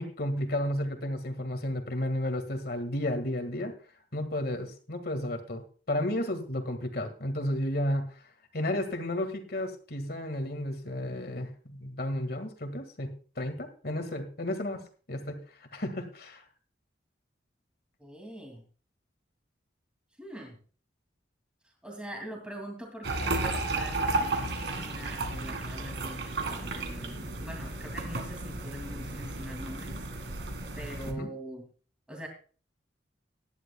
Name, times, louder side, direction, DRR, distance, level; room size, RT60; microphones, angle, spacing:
voice 1, 0.0-3.7 4.1-5.6 5.9-8.0 8.5-14.8 15.1-16.4 31.1-31.3, left 1 dB, 55° left, 7 dB, 1.8 m, -32 dB
voice 2, 18.0-18.6 20.2-20.6 21.8-31.6 32.1-32.3, equal, 5° right, 1 dB, 2.4 m, -43 dB
sound 1, 23.0-31.1, right 2 dB, 75° right, 1.8 m, -33 dB
18.0 x 11.0 x 2.3 m, 0.39 s
head